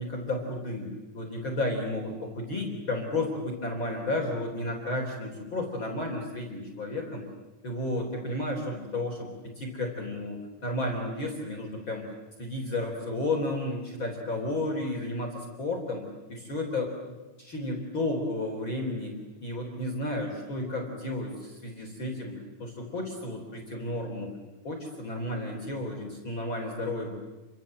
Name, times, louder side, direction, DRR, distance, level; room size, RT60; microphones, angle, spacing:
voice 1, 0.0-7.2 7.6-9.3 9.6-12.0 12.4-16.0 16.3-16.9 17.4-19.1 19.4-22.3 22.6-24.3 24.6-27.2, left 2 dB, 30° left, 0 dB, 4.2 m, -32 dB
29.5 x 25.5 x 7.7 m, 1.1 s
omnidirectional pair, 4.4 m